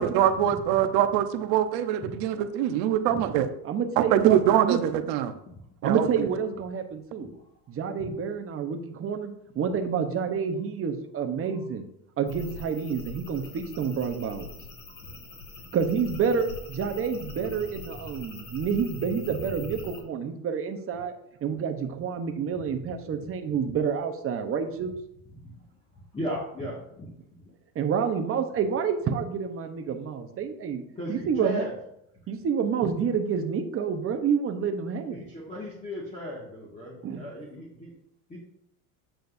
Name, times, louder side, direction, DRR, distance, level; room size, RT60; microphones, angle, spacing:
voice 1, 0.0-3.5 4.0-5.3 5.8-6.1, right 10 dB, 60° right, 9 dB, 1.0 m, -23 dB
voice 2, 0.7-1.0 2.0-2.2 3.1-3.2 5.5-5.6 7.3-7.4 8.0-8.1 14.9-15.0 19.2-19.4 23.2-23.3 23.6-23.8 25.9-27.4 31.0-31.7 35.1-37.9 38.3-38.4, equal, 15° left, -5 dB, 1.9 m, -37 dB
voice 3, 3.6-4.8 5.8-7.3 7.7-11.9 12.2-14.6 15.7-21.1 21.4-25.0 27.7-30.8 31.1-31.6 32.3-35.2 37.0-37.2, right 6 dB, 30° right, 6 dB, 1.0 m, -28 dB
sound 1, 12.3-20.0, left 3 dB, 40° left, 2.2 m, -43 dB
9.2 x 7.6 x 2.7 m, 0.75 s
supercardioid pair, 130°, 45 cm